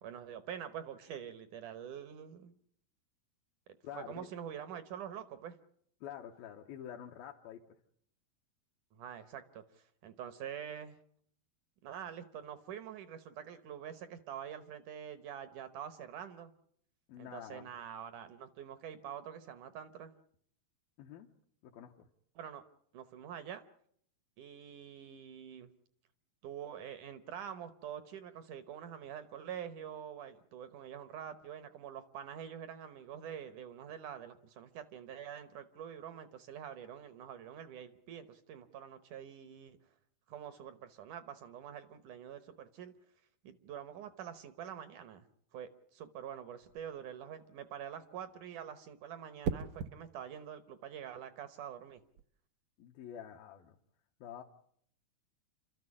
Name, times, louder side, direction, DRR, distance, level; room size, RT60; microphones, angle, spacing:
voice 1, 0.0-2.6 3.9-5.6 8.9-11.0 11.8-16.5 17.2-20.1 22.4-22.6 22.9-23.6 24.4-25.7 26.4-39.8 40.3-42.9 43.4-45.3 45.5-52.0, right 9 dB, 70° right, 11 dB, 2.0 m, -46 dB
voice 2, 3.8-4.3 6.0-7.8 17.1-17.7 21.0-21.3 21.6-22.1 52.8-53.8 54.2-54.4, left 9 dB, 70° left, 0 dB, 2.7 m, -48 dB
sound 1, 46.6-47.0 49.4-50.0 51.9-52.2, right 7 dB, 90° right, 1.5 m, -37 dB
28.5 x 13.5 x 9.8 m, 0.68 s
omnidirectional pair, 4.6 m